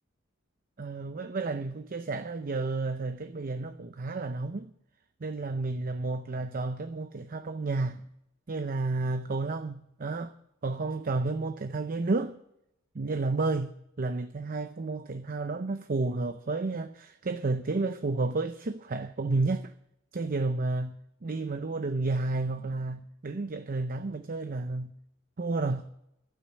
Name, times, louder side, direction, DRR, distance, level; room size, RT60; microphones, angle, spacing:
voice 1, 0.8-4.7 5.2-8.1 8.5-10.3 10.6-12.3 12.9-19.7 20.1-24.9 25.4-25.9, right 3 dB, 45° right, 0.6 m, -31 dB
12.5 x 9.2 x 7.6 m
head